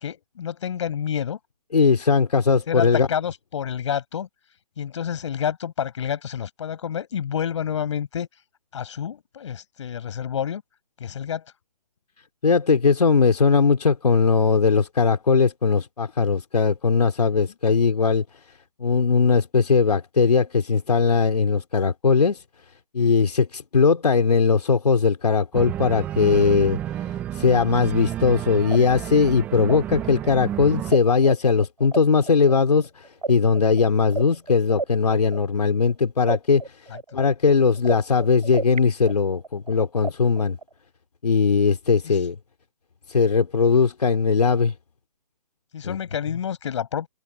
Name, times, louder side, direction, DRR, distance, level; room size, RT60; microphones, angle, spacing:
voice 1, 0.0-1.4 2.7-4.3 4.8-8.3 8.7-10.6 11.0-11.4 42.0-42.1 45.7-47.1, left 8 dB, 45° left, 7.3 m, -29 dB
voice 2, 1.7-3.1 12.4-18.2 18.8-22.4 22.9-40.6 41.2-42.4 43.1-44.7 45.8-46.0, left 5 dB, 75° left, 3.1 m, -20 dB
Organ, 25.5-30.9, right 11 dB, 10° right, 0.6 m, -31 dB
sound 1, 28.0-31.0 31.2-35.9 36.3-38.8 39.1-40.7, right 4 dB, 80° right, 4.9 m, -33 dB
hypercardioid pair, 155°, 20 cm